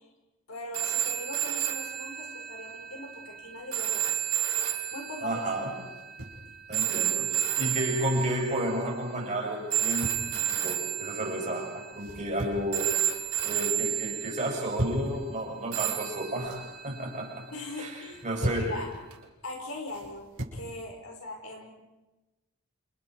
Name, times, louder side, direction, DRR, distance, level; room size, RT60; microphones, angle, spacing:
voice 1, 0.5-4.2 4.9-5.9 17.5-18.9 19.4-21.7, left 2 dB, 80° left, 3 dB, 5.1 m, -40 dB
sound 1, 0.7-8.9 9.7-12.4 12.7-14.8 15.7-18.0 19.1-19.2, right 10 dB, 80° right, 2.8 m, -32 dB
voice 2, 5.2-5.8 6.7-13.0 13.4-17.4 17.8-18.7, right 1 dB, 35° right, -1 dB, 7.1 m, -32 dB
sound 2, 5.9-6.5 7.8-8.4 9.7-10.3 12.0-12.7 13.1-13.6 14.4-15.1 16.1-16.7 18.0-18.7 19.9-20.6, right 1 dB, 65° right, 6.0 m, -37 dB
29.5 x 28.5 x 4.7 m, 1.1 s
head